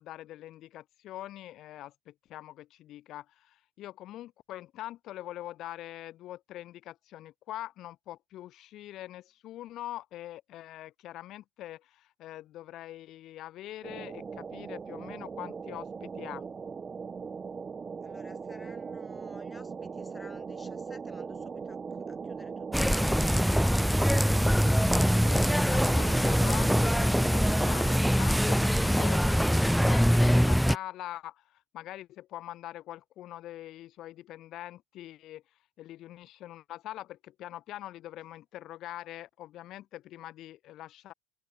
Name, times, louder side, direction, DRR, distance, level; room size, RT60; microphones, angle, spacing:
voice 1, 0.0-16.4 24.9-35.4 35.8-41.1, left 14 dB, 55° left, 5.0 m, -43 dB
sound 1, 13.8-28.1, right 5 dB, 30° right, 3.8 m, -39 dB
voice 2, 18.0-23.8, left 3 dB, 20° left, 7.1 m, -55 dB
sound 2, 22.7-30.8, equal, ahead, 0.3 m, -23 dB
hypercardioid pair, 70°, 0 cm